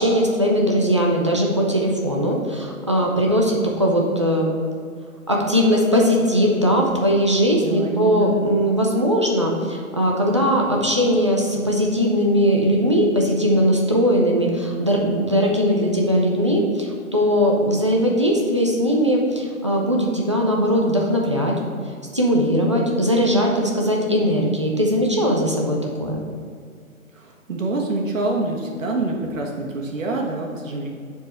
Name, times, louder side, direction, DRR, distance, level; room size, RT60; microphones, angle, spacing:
voice 1, 0.0-4.5 5.3-21.6 22.1-26.2, equal, 20° right, -2 dB, 0.5 m, -19 dB
voice 2, 7.6-8.3 27.1-30.9, right 2 dB, 65° right, 0 dB, 1.6 m, -26 dB
7.3 x 4.5 x 5.4 m, 2.2 s
hypercardioid pair, 165°, 42 cm